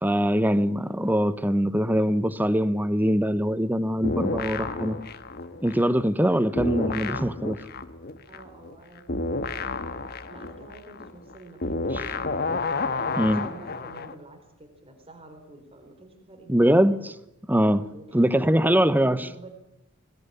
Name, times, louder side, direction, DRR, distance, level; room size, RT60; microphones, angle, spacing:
voice 1, 0.0-5.0 5.6-7.5 13.2-13.4 16.5-17.1 17.5-17.9 18.1-19.2, equal, 10° right, 1.0 m, -22 dB
sound 1, 4.0-6.3 6.6-14.1, left 3 dB, 50° left, 1.5 m, -31 dB
voice 2, 7.0-7.4 8.3-9.4 10.3-12.5 13.0-16.7 17.9-19.5, right 2 dB, 30° right, 4.0 m, -47 dB
20.5 x 20.0 x 9.9 m
head